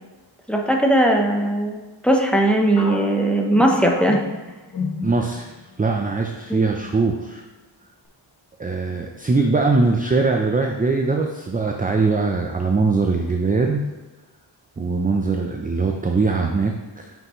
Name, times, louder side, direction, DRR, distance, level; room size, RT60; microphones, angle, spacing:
voice 1, 0.5-4.2 6.5-6.7, right 1 dB, ahead, 1 dB, 0.8 m, -19 dB
sound 1, 2.8-5.6 5.9-6.1 6.8-7.2, left 3 dB, 45° left, 1.2 m, -31 dB
voice 2, 5.0-5.5 5.8-7.4 8.6-13.8 14.8-17.1, right 3 dB, 20° right, 2 dB, 0.5 m, -21 dB
8.2 x 5.5 x 3.1 m, 1.2 s
wide cardioid pair, 100°, 46 cm